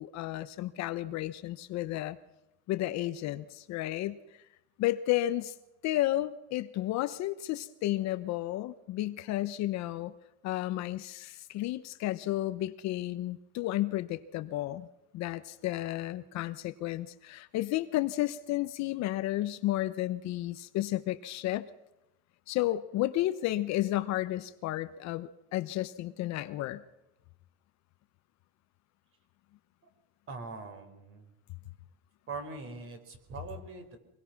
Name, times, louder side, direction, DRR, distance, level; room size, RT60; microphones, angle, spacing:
voice 1, 0.0-2.2 2.7-4.2 4.8-5.5 5.8-10.1 10.4-14.9 15.1-21.7 22.5-26.8, left 15 dB, 45° left, 12 dB, 0.9 m, -32 dB
voice 2, 30.3-31.3 32.3-34.0, right 3 dB, 35° right, 7 dB, 4.4 m, -42 dB
25.5 x 21.0 x 6.0 m, 0.94 s
cardioid pair, 160°, 37 cm